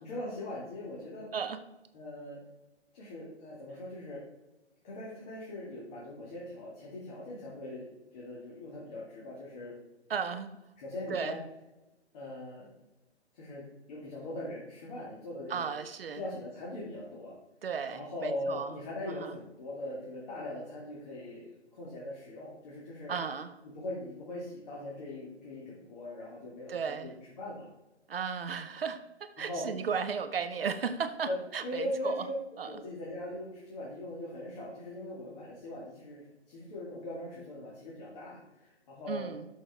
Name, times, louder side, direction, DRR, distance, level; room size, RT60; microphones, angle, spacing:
voice 1, 0.0-1.3 1.9-2.4 2.9-4.2 4.8-7.9 8.1-9.7 10.8-11.4 12.1-12.7 13.4-15.7 16.1-17.3 17.9-23.1 23.7-27.7 29.4-29.7 31.2-31.4 31.6-32.4 32.6-39.3, left 1 dB, 35° left, -5 dB, 2.2 m, -40 dB
voice 2, 10.1-10.6 11.1-11.4 15.5-16.2 17.6-18.7 19.2-19.3 23.1-23.5 26.7-27.1 28.1-32.2 32.6-32.7 39.1-39.5, right 6 dB, 55° right, 10 dB, 0.7 m, -35 dB
8.9 x 6.4 x 3.5 m, 0.99 s
figure-of-eight pair, 135°, 34 cm